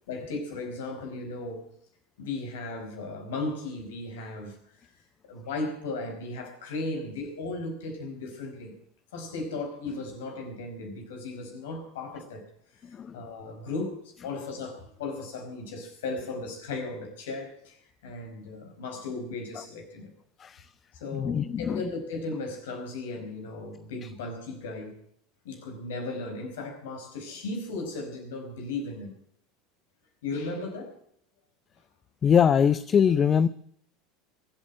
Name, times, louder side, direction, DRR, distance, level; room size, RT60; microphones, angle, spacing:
voice 1, 0.1-1.7 2.2-4.9 5.3-8.7 9.1-12.4 12.9-20.1 20.9-24.9 25.4-29.1 30.2-31.0, left 3 dB, 65° left, 5.0 m, -36 dB
voice 2, 21.1-21.8 32.2-33.5, left 7 dB, 30° left, 0.6 m, -22 dB
22.5 x 8.6 x 7.5 m
figure-of-eight pair, 75°, 0 cm